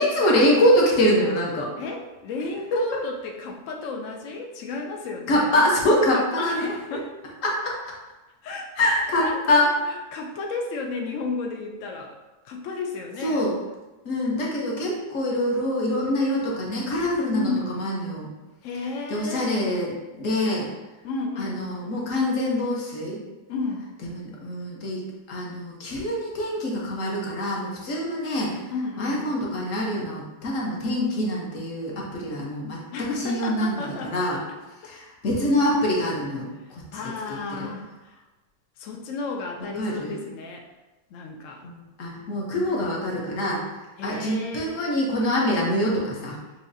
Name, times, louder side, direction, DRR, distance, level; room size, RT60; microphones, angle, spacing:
voice 1, 0.0-1.7 5.3-6.7 7.4-7.8 8.8-9.7 13.2-13.5 14.0-18.3 19.1-20.7 21.4-23.2 24.0-28.6 29.0-32.8 33.1-34.4 34.8-37.0 37.3-37.4 39.8-40.2 41.6-43.6 44.0-46.4, left 1 dB, 50° left, -3 dB, 1.2 m, -24 dB
voice 2, 1.8-5.5 6.1-7.1 8.4-12.2 12.4-13.5 17.3-17.6 18.6-19.5 21.0-21.6 23.5-23.9 28.7-29.3 32.9-34.1 34.5-34.6 34.8-35.1 36.6-38.2 38.8-40.7 41.1-41.6 44.0-44.8, left 3 dB, 80° left, 2 dB, 0.6 m, -33 dB
6.4 x 2.8 x 2.6 m, 1.1 s
omnidirectional pair, 1.9 m